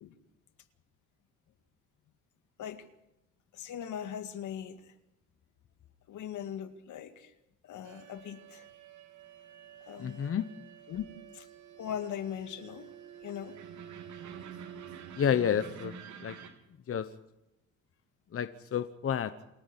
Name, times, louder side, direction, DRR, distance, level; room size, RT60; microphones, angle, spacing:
voice 1, 3.5-4.9 6.1-7.3 7.6-8.7 9.8-10.2 10.9-11.0 11.3-11.5 11.8-12.9 13.2-13.6, left 9 dB, 75° left, 9 dB, 2.1 m, -40 dB
sound 1, 7.8-16.5, right 8 dB, 75° right, 3.5 m, -48 dB
voice 2, 10.0-10.5 15.2-15.9 16.2-16.4 16.9-17.1 18.3-19.3, left 8 dB, 50° left, 11 dB, 1.1 m, -30 dB
28.0 x 9.8 x 10.0 m, 0.87 s
cardioid pair, 90°, 30 cm